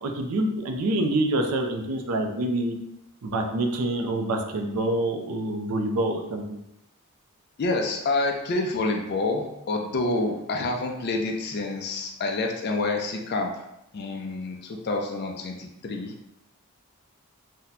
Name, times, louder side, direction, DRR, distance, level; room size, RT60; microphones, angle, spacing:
voice 1, 0.0-2.8 3.2-6.4, right 1 dB, 85° right, 4 dB, 0.5 m, -26 dB
voice 2, 7.6-13.6 13.9-16.1, left 2 dB, 45° left, 2 dB, 0.4 m, -28 dB
2.7 x 2.1 x 4.0 m, 0.85 s
head